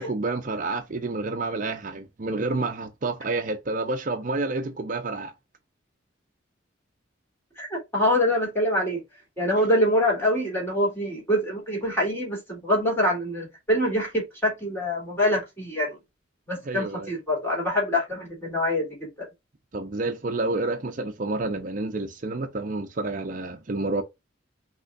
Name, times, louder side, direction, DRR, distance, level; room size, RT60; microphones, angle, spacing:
voice 1, 0.0-5.3 9.6-9.7 16.7-17.1 19.7-24.0, right 3 dB, 45° right, 0.6 m, -29 dB
voice 2, 7.6-9.0 9.4-16.0 16.5-19.3, left 1 dB, 10° left, 3.1 m, -25 dB
6.0 x 3.1 x 2.5 m
head